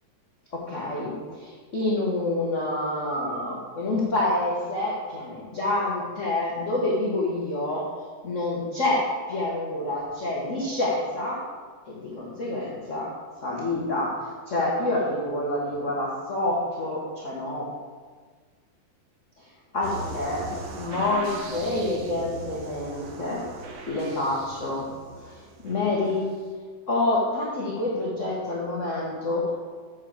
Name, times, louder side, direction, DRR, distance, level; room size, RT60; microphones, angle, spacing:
voice 1, 0.5-7.9 8.2-11.4 11.9-13.1 13.4-17.7 19.7-20.5 20.8-23.4 23.9-24.9 25.2-26.3 26.9-29.5, left 2 dB, 45° left, -4 dB, 0.9 m, -27 dB
sound 1, 19.8-26.4, right 2 dB, 65° right, 2.2 m, -39 dB
7.5 x 6.5 x 7.2 m, 1.5 s
omnidirectional pair, 3.5 m